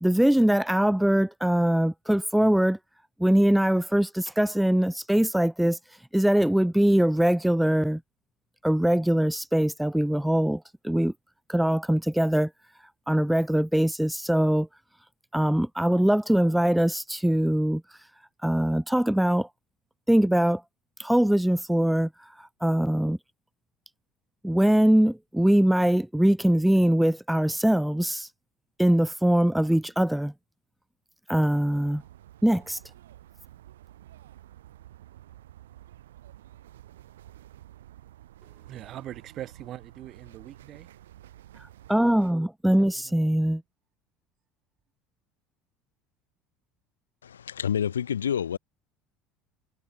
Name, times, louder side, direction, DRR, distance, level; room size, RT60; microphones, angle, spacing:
voice 1, 0.0-2.8 3.2-5.8 6.1-8.0 8.6-11.1 11.5-12.5 13.1-14.7 15.3-18.0 18.4-19.5 20.1-20.6 21.0-23.2 24.4-28.3 28.8-30.3 31.3-32.0 32.4-32.8 41.6-43.6, right 1 dB, 5° right, 0.5 m, -22 dB
sound 1, 31.7-42.3, right 13 dB, 70° right, 4.7 m, -50 dB
voice 2, 38.4-40.9 42.8-43.2 43.5-43.6, right 12 dB, 45° right, 4.3 m, -42 dB
voice 3, 47.2-48.6, left 8 dB, 80° left, 0.8 m, -28 dB
figure-of-eight pair, 65°, 0 cm